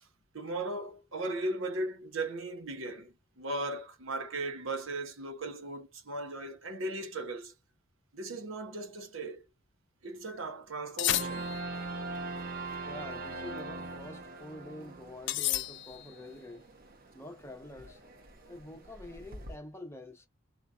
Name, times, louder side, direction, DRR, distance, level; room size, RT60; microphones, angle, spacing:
voice 1, 0.3-7.5 8.1-9.4 10.0-11.5, right 2 dB, 70° right, 0.9 m, -37 dB
sound 1, 11.0-11.9 15.3-16.2, left 15 dB, 55° left, 0.3 m, -32 dB
sound 2, 11.1-19.6, right 2 dB, 45° right, 0.8 m, -42 dB
voice 2, 12.8-16.7 17.1-18.0 18.5-20.3, left 1 dB, 10° left, 0.8 m, -47 dB
3.8 x 2.8 x 3.6 m
head